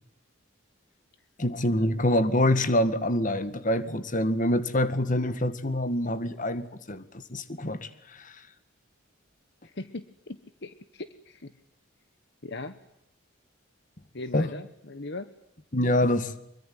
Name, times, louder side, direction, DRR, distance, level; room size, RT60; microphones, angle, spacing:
voice 1, 1.4-8.4 14.3-14.5 15.7-16.3, left 1 dB, 40° left, 1.9 m, -26 dB
voice 2, 9.6-11.5 12.4-12.8 14.1-15.4, left 2 dB, 55° left, 1.3 m, -39 dB
25.5 x 23.5 x 9.5 m
head